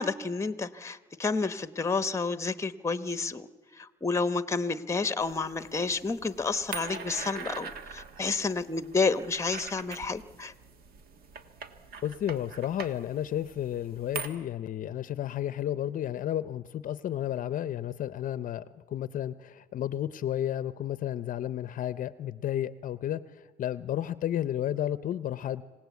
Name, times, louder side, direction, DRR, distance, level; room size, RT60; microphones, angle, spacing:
voice 1, 0.0-3.5 3.8-10.5, left 4 dB, 15° left, 12 dB, 0.9 m, -30 dB
sound 1, 5.2-14.3, right 5 dB, 65° right, 1.6 m, -43 dB
voice 2, 12.0-25.6, left 11 dB, 50° left, 15 dB, 0.6 m, -32 dB
26.5 x 17.5 x 8.3 m, 1.3 s
cardioid pair, 110°, 17 cm